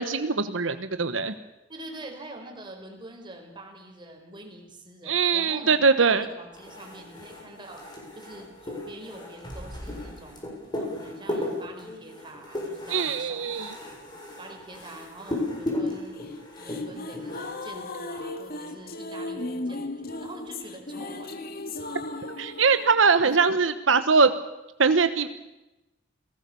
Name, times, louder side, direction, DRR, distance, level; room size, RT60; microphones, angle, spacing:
voice 1, 0.0-1.3 5.1-6.2 12.9-13.7 22.4-24.3 24.8-25.3, right 5 dB, 90° right, 10 dB, 1.2 m, -22 dB
voice 2, 1.7-10.4 10.8-13.7 14.4-16.2 16.6-21.5, right 1 dB, 25° right, 3 dB, 4.8 m, -45 dB
sound 1, 6.5-17.8, left 1 dB, 25° left, 7.2 m, -35 dB
sound 2, 16.1-23.4, left 2 dB, 55° left, 2.2 m, -36 dB
28.5 x 18.5 x 7.1 m, 0.97 s
head